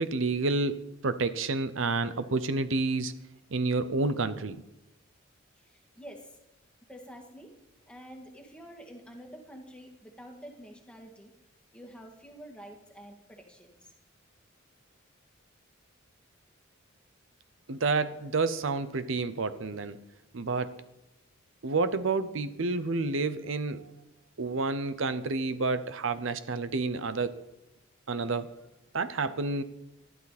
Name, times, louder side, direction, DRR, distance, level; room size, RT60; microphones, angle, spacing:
voice 1, 0.0-3.1 3.5-4.6 17.7-20.0 20.3-20.8 21.6-23.9 24.4-27.3 28.1-28.5 28.9-29.6, right 3 dB, 70° right, 12 dB, 0.8 m, -29 dB
voice 2, 5.6-6.4 6.9-7.5 7.9-11.3 11.7-13.9, equal, 5° left, 1 dB, 2.2 m, -48 dB
19.0 x 12.0 x 4.2 m, 0.89 s
head